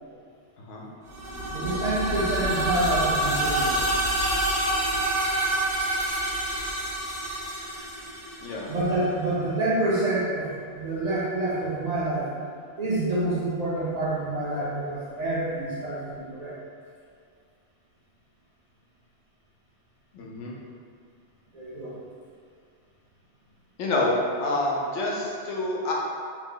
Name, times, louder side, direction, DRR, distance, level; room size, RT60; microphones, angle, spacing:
sound 1, 1.1-8.9, right 1 dB, 90° right, 1.1 m, -27 dB
voice 1, 1.5-3.8 8.7-12.3 12.8-16.6 21.5-22.0, right 2 dB, 50° right, -9 dB, 0.5 m, -27 dB
voice 2, 20.1-20.5 23.8-25.9, left 2 dB, 90° left, -3 dB, 0.9 m, -27 dB
2.8 x 2.0 x 3.7 m, 2.2 s
omnidirectional pair, 1.2 m